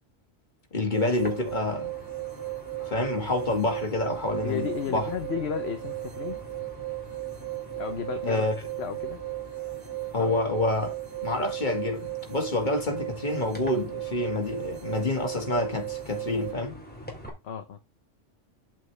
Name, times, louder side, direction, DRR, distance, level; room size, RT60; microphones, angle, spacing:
voice 1, 0.7-1.9 2.8-5.1 8.2-8.6 10.1-10.9 11.2-16.8, left 2 dB, 40° left, 2.0 m, -28 dB
sound 1, 0.9-16.5, right 20 dB, 60° right, 0.9 m, -36 dB
sound 2, 1.1-17.3, equal, 10° left, 2.3 m, -45 dB
voice 2, 4.4-6.4 7.8-8.5 8.8-9.2 10.2-10.3 17.4-17.8, left 8 dB, 60° left, 1.1 m, -33 dB
8.0 x 7.4 x 3.3 m
omnidirectional pair, 1.2 m